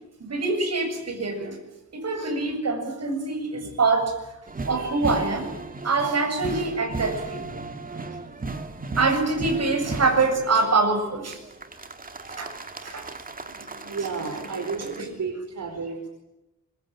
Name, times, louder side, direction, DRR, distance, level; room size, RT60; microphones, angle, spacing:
voice 1, 0.2-1.6 1.9-4.1 4.6-5.5 5.8-7.5 9.0-11.4 12.4-12.5 12.8-13.1 13.6-13.9, right 3 dB, 50° right, 4 dB, 7.7 m, -24 dB
sound 1, 4.5-10.4 11.3-15.0, right 3 dB, 25° right, 2.1 m, -36 dB
voice 2, 13.9-16.1, right 5 dB, 70° right, 3 dB, 4.9 m, -32 dB
25.5 x 23.0 x 9.0 m, 0.96 s
wide cardioid pair, 170°, 32 cm